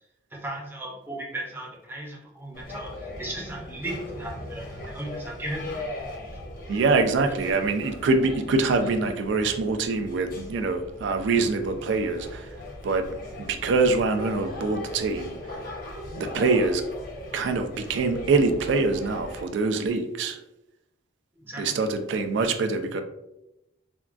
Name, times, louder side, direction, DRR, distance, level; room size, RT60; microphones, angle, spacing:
voice 1, 0.3-5.8 21.4-21.8, right 1 dB, 10° right, -2 dB, 0.5 m, -36 dB
sound 1, 2.5-19.4, left 1 dB, 45° left, 0.6 m, -39 dB
voice 2, 6.7-12.5 12.8-13.1 13.5-15.4 16.2-16.8 17.3-20.4 21.6-23.0, right 3 dB, 65° right, 7 dB, 0.3 m, -24 dB
3.4 x 2.2 x 2.4 m, 0.88 s
head